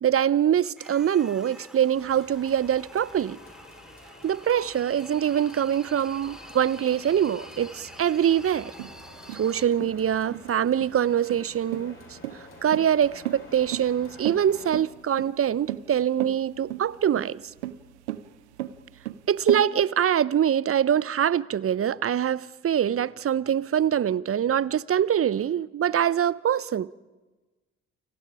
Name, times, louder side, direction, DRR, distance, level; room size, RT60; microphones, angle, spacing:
voice 1, 0.0-3.4 4.2-8.7 9.3-12.0 12.6-17.4 19.3-26.9, right 9 dB, 40° right, 0.9 m, -24 dB
sound 1, 0.8-9.6, equal, ahead, 3.6 m, -48 dB
sound 2, 2.0-14.8, left 2 dB, 40° left, 7.5 m, -49 dB
sound 3, 8.8-19.6, right 14 dB, 85° right, 0.9 m, -35 dB
29.0 x 28.5 x 5.0 m
hypercardioid pair, 45°, 33 cm